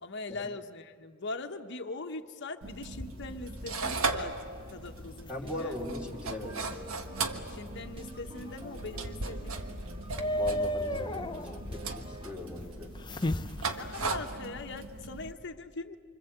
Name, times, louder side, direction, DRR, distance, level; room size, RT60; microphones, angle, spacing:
voice 1, 0.0-4.4 4.7-5.7 7.5-9.8 13.7-16.0, left 3 dB, 55° left, 5 dB, 1.2 m, -41 dB
sound 1, 2.6-15.3, right 3 dB, 80° right, 1.5 m, -38 dB
sound 2, 2.9-14.2, left 1 dB, 20° left, 0.6 m, -38 dB
voice 2, 5.3-6.6 10.4-11.4 11.7-12.9, left 1 dB, 5° right, 0 dB, 3.1 m, -39 dB
sound 3, 5.4-12.3, right 1 dB, 25° right, 1.5 m, -49 dB
26.5 x 25.5 x 8.0 m, 2.1 s
head